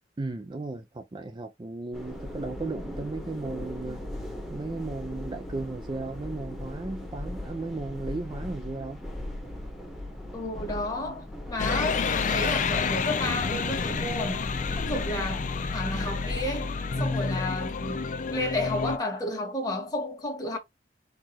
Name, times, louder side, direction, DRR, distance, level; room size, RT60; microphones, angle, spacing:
voice 1, 0.2-4.0 4.5-9.0 17.0-17.2, right 3 dB, 25° right, 0.4 m, -35 dB
sound 1, 1.9-16.4, left 1 dB, ahead, 1.1 m, -39 dB
voice 2, 10.3-14.5 14.7-18.0 18.3-20.6, left 1 dB, 20° left, 1.6 m, -32 dB
sound 2, 11.6-19.0, left 4 dB, 45° left, 0.5 m, -29 dB
4.6 x 2.4 x 4.3 m
head